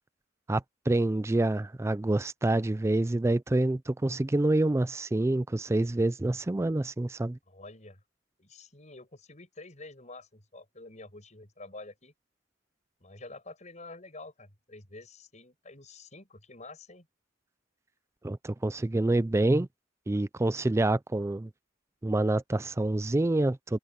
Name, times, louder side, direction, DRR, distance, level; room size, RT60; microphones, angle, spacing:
voice 1, 0.5-7.4 18.2-19.7 20.1-21.5 22.0-23.8, right 2 dB, 15° right, 0.3 m, -27 dB
voice 2, 7.5-8.0 8.4-12.1 13.0-17.1, left 2 dB, 40° left, 6.7 m, -48 dB
head